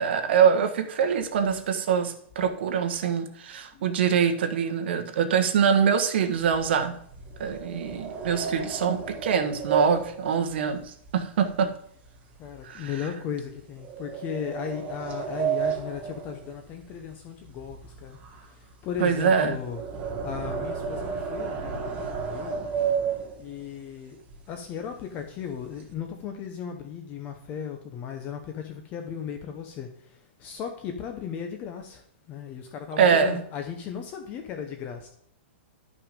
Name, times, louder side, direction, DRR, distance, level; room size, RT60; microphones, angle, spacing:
voice 1, 0.0-6.9 7.4-11.7 12.6-12.9 19.0-19.6 33.0-33.4, right 7 dB, 60° right, 7 dB, 1.5 m, -24 dB
sound 1, 6.4-11.7 12.0-12.4 12.9-13.0 13.8-17.1 17.4-23.7 24.3-24.4 24.7-24.9 25.3-25.9, right 6 dB, 20° right, 1.5 m, -32 dB
voice 2, 12.4-19.8 20.2-22.6 23.4-24.2 24.5-35.1, left 7 dB, 25° left, 5 dB, 0.9 m, -36 dB
12.0 x 5.9 x 5.3 m, 0.70 s
hypercardioid pair, 165°, 7 cm